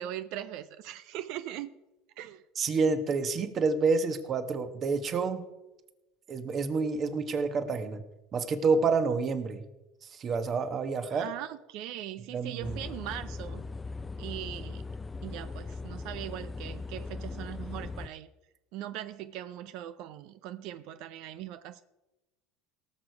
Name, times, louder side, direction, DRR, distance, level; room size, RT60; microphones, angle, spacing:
voice 1, 0.0-1.8 2.2-2.4 11.1-13.6 14.2-14.8 15.2-18.3 18.7-21.8, right 12 dB, 65° right, 13 dB, 0.5 m, -40 dB
voice 2, 2.6-5.4 6.3-8.0 8.3-9.6 10.0-11.3 12.3-12.8, right 4 dB, 35° right, 9 dB, 1.2 m, -28 dB
sound 1, 12.6-18.1, left 3 dB, 15° left, 0.4 m, -39 dB
18.5 x 6.5 x 4.8 m, 1.0 s
supercardioid pair, 110°, 0 cm